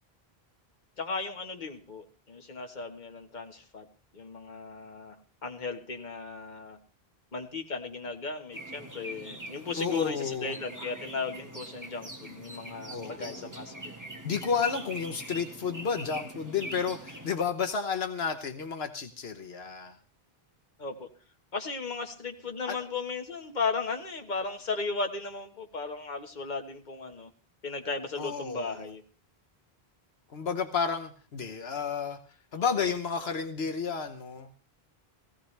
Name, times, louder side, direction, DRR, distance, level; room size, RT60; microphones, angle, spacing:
voice 1, 1.0-3.8 4.1-5.1 5.4-6.8 7.3-14.0 20.8-21.1 21.5-27.3 27.6-29.0, left 4 dB, 45° left, 4 dB, 1.6 m, -36 dB
sound 1, 8.5-17.3, right 1 dB, 20° right, 1.7 m, -43 dB
voice 2, 9.7-10.5 12.9-13.5 14.2-19.9 22.7-22.8 28.2-28.8 30.3-32.2 32.5-34.5, left 6 dB, 80° left, 7 dB, 1.2 m, -31 dB
17.5 x 16.0 x 3.3 m, 0.38 s
omnidirectional pair, 1.0 m